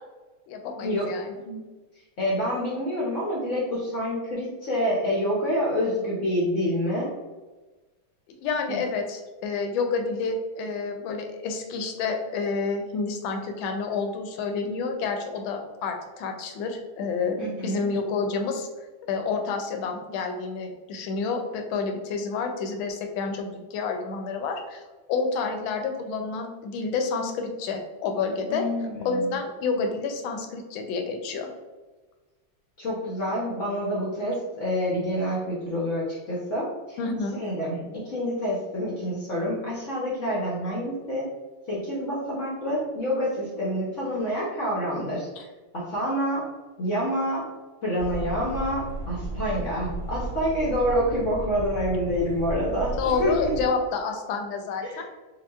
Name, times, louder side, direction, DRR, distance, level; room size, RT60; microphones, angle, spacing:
voice 1, 0.5-1.4 8.3-18.7 19.1-24.8 25.1-28.7 29.0-31.5 37.0-37.4 45.4-45.5 53.0-55.0, left 4 dB, 80° left, 4 dB, 1.3 m, -29 dB
voice 2, 2.2-7.1 8.7-8.8 17.4-17.9 28.5-29.4 32.8-37.0 37.3-41.3 41.7-45.3 45.7-46.4 46.8-47.4 47.8-53.5 54.8-55.0, equal, 60° left, -6 dB, 0.8 m, -27 dB
sound 1, 48.0-53.7, right 2 dB, 75° right, 1.4 m, -34 dB
5.1 x 2.5 x 2.3 m, 1.2 s
omnidirectional pair, 2.2 m